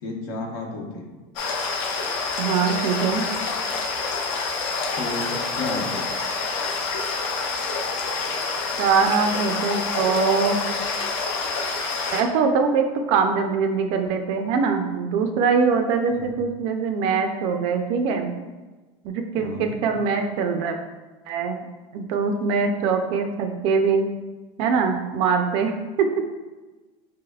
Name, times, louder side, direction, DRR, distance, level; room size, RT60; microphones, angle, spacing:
voice 1, 0.0-1.0 5.0-6.0 16.1-16.3 19.4-19.8, left 2 dB, 70° left, 0 dB, 0.9 m, -32 dB
sound 1, 1.4-12.2, left 4 dB, 45° left, 0.5 m, -27 dB
voice 2, 2.4-3.3 8.8-10.6 12.1-18.3 19.0-20.8 21.3-21.6 21.9-24.1 24.6-26.2, right 5 dB, 45° right, 5 dB, 0.4 m, -22 dB
5.5 x 3.3 x 2.3 m, 1.2 s
cardioid pair, 180°, 13 cm